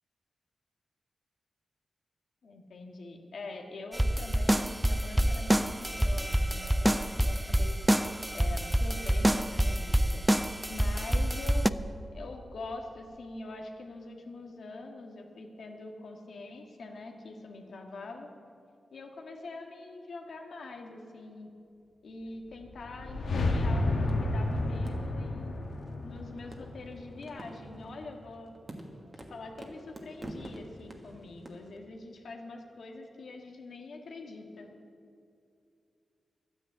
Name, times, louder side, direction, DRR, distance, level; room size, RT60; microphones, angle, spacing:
voice 1, 2.4-7.8 8.3-10.3 10.7-11.8 12.1-18.3 18.9-21.5 22.0-25.6 26.0-28.5 29.2-34.7, left 3 dB, 70° left, 2 dB, 1.8 m, -44 dB
sound 1, 3.9-11.7, right 1 dB, 5° right, 0.3 m, -27 dB
sound 2, 22.5-27.7, left 2 dB, 90° left, 1.7 m, -31 dB
sound 3, 23.3-31.8, right 1 dB, 25° right, 1.6 m, -47 dB
12.5 x 9.5 x 8.5 m, 2.5 s
wide cardioid pair, 145°, 0 cm